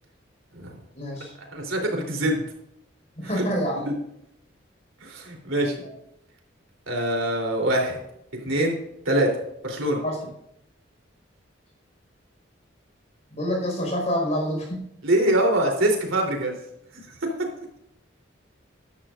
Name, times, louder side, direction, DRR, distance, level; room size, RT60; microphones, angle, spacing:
voice 1, 0.9-1.3 3.2-3.9 5.8-5.9 10.0-10.3 13.3-14.9 15.3-15.4, equal, 35° left, -1 dB, 5.0 m, -27 dB
voice 2, 1.5-2.4 3.3-3.4 5.0-5.7 6.9-8.0 8.4-8.7 9.0-9.3 9.6-10.0 15.0-16.5 17.2-17.3, right 1 dB, 85° right, 1 dB, 3.4 m, -23 dB
15.5 x 11.0 x 2.5 m, 0.79 s
head